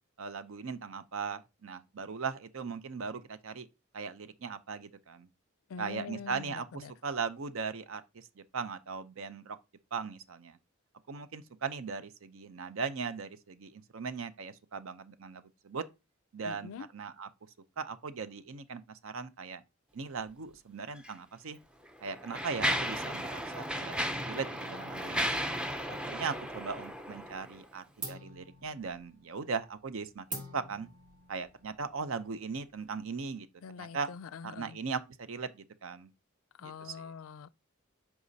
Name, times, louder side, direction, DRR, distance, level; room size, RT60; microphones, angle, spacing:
voice 1, 0.2-3.7 3.9-5.3 5.8-9.6 9.9-10.6 11.1-15.8 16.3-17.3 17.8-19.6 19.9-21.6 22.0-24.0 24.2-25.3 26.1-30.9 31.3-33.5 33.8-34.1 34.4-36.1 36.6-37.1, right 5 dB, 70° right, 0.6 m, -39 dB
voice 2, 5.7-6.9 16.4-16.9 33.6-34.8 36.6-37.5, left 6 dB, 70° left, 0.4 m, -44 dB
Mechanisms, 21.0-21.1 21.8-27.6, equal, 5° right, 0.5 m, -34 dB
sound 1, 26.7-26.9 27.2-27.6 28.0-33.2, right 2 dB, 40° right, 1.7 m, -47 dB
8.1 x 4.9 x 2.7 m
head